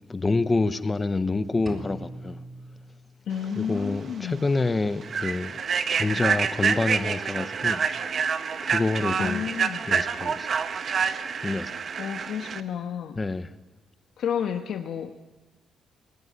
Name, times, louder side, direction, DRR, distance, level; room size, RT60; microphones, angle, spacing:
voice 1, 0.1-2.4 3.6-5.6 5.9-7.8 8.6-9.4 9.9-10.5 11.4-11.8 13.2-13.5, left 3 dB, 15° left, 0.8 m, -27 dB
sound 1, 1.7-3.6, right 2 dB, 20° right, 2.7 m, -42 dB
voice 2, 3.3-4.5 9.2-9.8 12.0-13.2 14.2-15.1, left 8 dB, 60° left, 1.1 m, -31 dB
Human voice / Train, 3.7-3.9 4.3-4.5 5.0-12.6, right 6 dB, 40° right, 0.9 m, -27 dB
21.0 x 19.5 x 9.6 m
cardioid pair, 175°, 0 cm